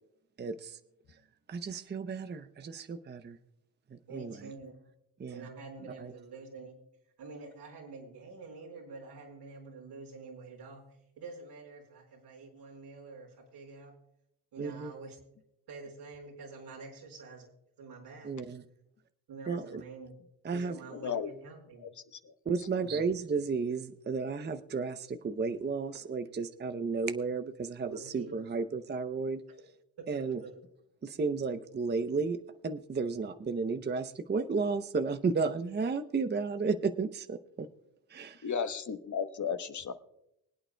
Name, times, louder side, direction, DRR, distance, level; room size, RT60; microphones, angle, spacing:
voice 1, 0.4-0.8 1.5-3.4 3.9-4.4 5.2-5.5 6.0-6.1 14.6-14.9 18.2-18.6 19.5-19.8 20.4-20.8 22.5-27.9 28.1-29.4 30.1-30.4 31.0-32.4 32.6-37.7 38.1-38.5, right 4 dB, 25° right, 9 dB, 0.7 m, -33 dB
voice 2, 4.1-4.7 5.3-6.7 7.2-10.8 11.2-13.9 14.5-15.2 15.7-17.5 17.8-18.3 19.3-20.2 20.5-21.8 22.8-23.0 27.9-28.3 30.0-30.6, right 4 dB, 85° right, 0 dB, 4.7 m, -47 dB
voice 3, 20.9-21.3 21.8-21.9 22.2-22.3 38.4-39.9, left 6 dB, 45° left, 9 dB, 1.1 m, -34 dB
25.0 x 8.8 x 2.2 m, 0.81 s
cardioid pair, 75°, 40 cm